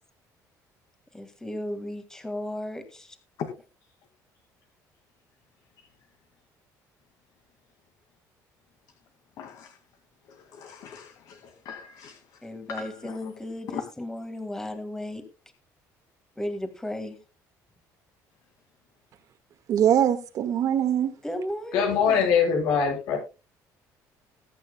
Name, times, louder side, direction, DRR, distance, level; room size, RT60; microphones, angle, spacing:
voice 1, 1.1-3.2 12.4-15.2 16.4-17.2 21.2-22.3, left 1 dB, 10° left, 1.9 m, -35 dB
voice 2, 9.4-9.8 10.2-13.3 13.7-13.8, left 8 dB, 65° left, 2.2 m, -41 dB
voice 3, 19.7-21.1, right 10 dB, 55° right, 1.7 m, -22 dB
voice 4, 21.7-23.2, left 6 dB, 85° left, 7.9 m, -22 dB
21.5 x 9.4 x 2.3 m
cardioid pair, 140°, 7 cm